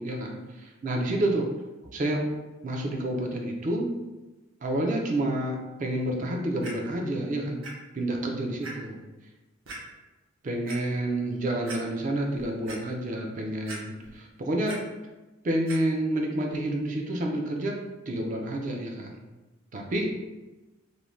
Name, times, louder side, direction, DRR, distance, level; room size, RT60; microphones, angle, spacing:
voice 1, 0.0-1.5 1.9-2.2 2.6-3.9 4.6-7.6 7.9-9.0 10.4-14.8 15.4-17.8 18.1-19.2 19.7-20.1, right 1 dB, 35° right, 1 dB, 0.3 m, -29 dB
Clock, 6.6-6.7 7.6-7.7 8.2-8.3 8.6-8.7 9.7-9.8 10.4-10.8 11.3-11.4 11.7-11.8 12.2-12.8 13.7-14.2 14.4-14.8 15.7-15.8 16.5-16.6, right 2 dB, 65° right, 0.7 m, -40 dB
2.5 x 2.0 x 3.1 m, 1.1 s
head